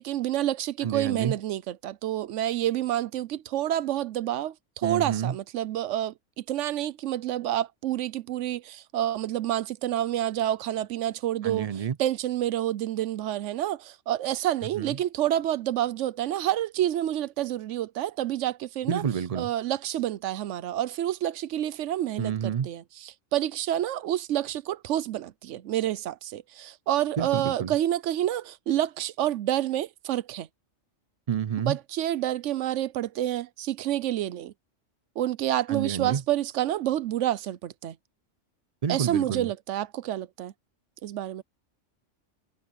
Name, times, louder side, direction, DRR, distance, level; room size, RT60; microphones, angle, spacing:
voice 1, 0.0-11.7 12.0-19.0 19.4-30.5 31.7-34.5 35.2-38.0 38.9-40.5 41.0-41.4, right 12 dB, 75° right, 1.0 m, -28 dB
voice 2, 0.8-1.4 4.8-5.3 11.4-12.0 14.7-15.0 18.9-19.5 22.2-22.7 27.2-27.7 31.3-31.8 35.7-36.2 38.8-39.5, right 8 dB, 60° right, 0.4 m, -29 dB
omnidirectional pair, 1.3 m